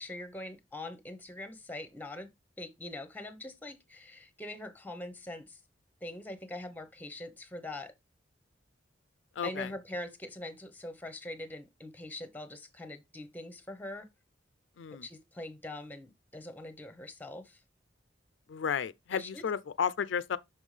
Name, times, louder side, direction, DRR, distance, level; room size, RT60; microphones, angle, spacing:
voice 1, 0.0-2.3 2.6-5.6 6.0-7.9 9.4-14.1 15.0-17.6 19.1-19.4, left 1 dB, 10° left, 0.8 m, -43 dB
voice 2, 9.4-9.7 14.8-15.1 18.5-20.4, left 7 dB, 80° left, 0.4 m, -33 dB
5.8 x 5.3 x 3.2 m
head